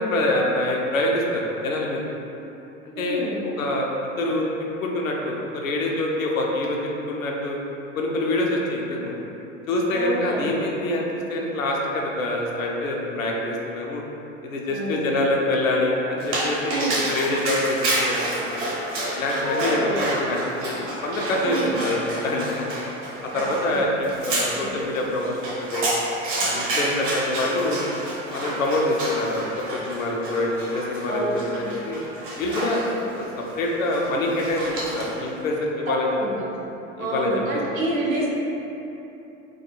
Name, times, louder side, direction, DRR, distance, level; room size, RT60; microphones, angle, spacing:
voice 1, 0.0-2.0 3.0-3.9 4.2-4.5 4.8-6.8 7.1-7.6 7.9-9.2 9.7-14.0 14.4-18.2 18.4-18.6 19.1-22.0 22.2-22.8 23.2-25.8 26.4-27.8 28.3-32.0 32.4-32.8 33.1-36.2 37.0-37.4, left 1 dB, 80° left, -1 dB, 0.5 m, -25 dB
voice 2, 2.9-3.4 9.9-10.6 14.7-15.0 16.7-17.0 19.4-20.0 21.4-21.7 23.3-24.1 24.6-24.7 31.1-31.3 35.9-36.4 37.0-38.3, right 1 dB, 85° right, -5 dB, 0.6 m, -28 dB
Dog, 16.2-35.3, right 1 dB, 55° right, 0.9 m, -29 dB
2.3 x 2.2 x 2.8 m, 3.0 s
figure-of-eight pair, 75°, 40 cm